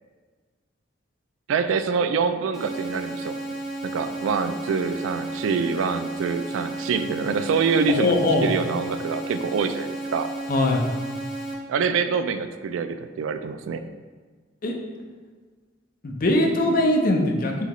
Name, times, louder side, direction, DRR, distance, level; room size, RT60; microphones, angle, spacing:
voice 1, 1.5-3.4 3.8-8.1 8.4-10.3 11.7-13.8, right 5 dB, 85° right, 11 dB, 0.3 m, -25 dB
sound 1, 2.5-11.5, right 2 dB, ahead, 0.6 m, -33 dB
voice 2, 8.0-8.5 10.5-10.8 14.6-14.7 16.0-17.7, left 1 dB, 45° left, 1 dB, 0.5 m, -21 dB
5.5 x 2.9 x 3.0 m, 1.4 s
head